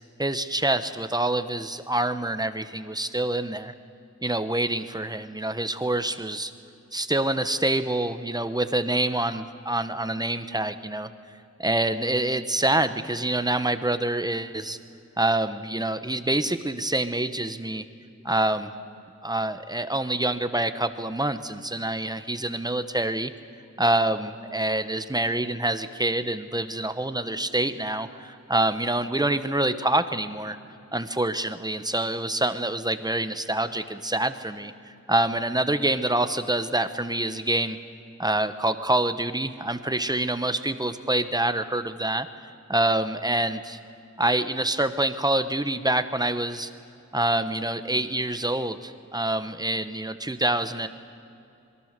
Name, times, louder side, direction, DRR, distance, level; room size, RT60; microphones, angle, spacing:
voice 1, 0.2-3.7 4.2-6.5 6.9-11.1 11.6-14.8 15.2-17.8 18.2-18.7 19.2-23.3 23.8-30.6 30.9-37.8 38.2-42.3 42.7-43.8 44.2-46.7 47.1-50.9, right 1 dB, 15° right, 11 dB, 1.1 m, -26 dB
26.5 x 22.5 x 6.7 m, 2.7 s
wide cardioid pair, 125°, 30 cm